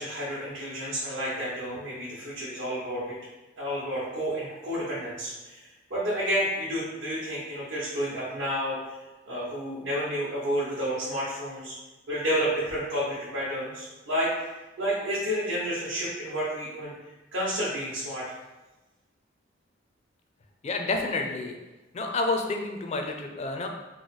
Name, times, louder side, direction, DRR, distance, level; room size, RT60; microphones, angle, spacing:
voice 1, 0.0-3.2 3.6-8.9 9.3-11.7 12.1-14.5 14.8-18.2, equal, 70° right, -9 dB, 0.9 m, -30 dB
voice 2, 20.6-21.5 21.9-23.7, left 3 dB, 35° left, 3 dB, 0.4 m, -29 dB
3.1 x 2.0 x 4.0 m, 1.1 s
head